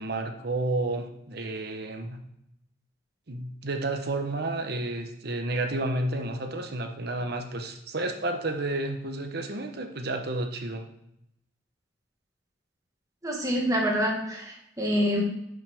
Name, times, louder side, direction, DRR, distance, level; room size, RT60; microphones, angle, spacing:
voice 1, 0.0-2.2 3.3-10.8, right 2 dB, 60° right, 5 dB, 1.1 m, -31 dB
voice 2, 13.2-15.2, equal, 20° right, -1 dB, 1.7 m, -26 dB
11.0 x 5.9 x 3.6 m, 0.80 s
head